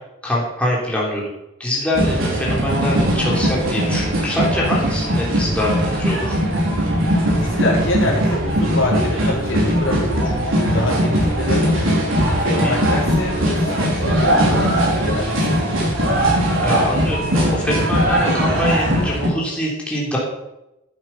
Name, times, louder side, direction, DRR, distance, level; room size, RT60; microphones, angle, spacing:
voice 1, 0.2-1.2 1.6-6.4 12.6-12.8 16.6-20.2, left 1 dB, 5° left, -5 dB, 3.2 m, -23 dB
sound 1, 1.9-19.3, equal, 80° right, 4.1 m, -19 dB
voice 2, 7.4-15.9, left 1 dB, 70° left, -3 dB, 4.0 m, -26 dB
11.5 x 8.7 x 5.6 m, 0.91 s
head